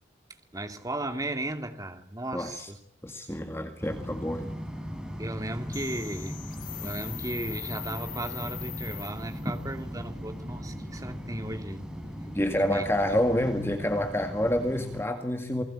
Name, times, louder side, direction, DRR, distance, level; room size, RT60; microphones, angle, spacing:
voice 1, 0.5-2.8 5.2-6.4 6.8-11.9 12.5-12.9, right 1 dB, 20° right, 2.3 m, -36 dB
voice 2, 2.3-2.7 3.0-4.5 9.5-9.6 12.3-15.6, left 1 dB, 15° left, 2.0 m, -28 dB
sound 1, 3.8-15.1, equal, 5° right, 5.0 m, -38 dB
sound 2, 5.7-9.6, left 14 dB, 50° left, 1.2 m, -41 dB
28.5 x 20.5 x 8.8 m
head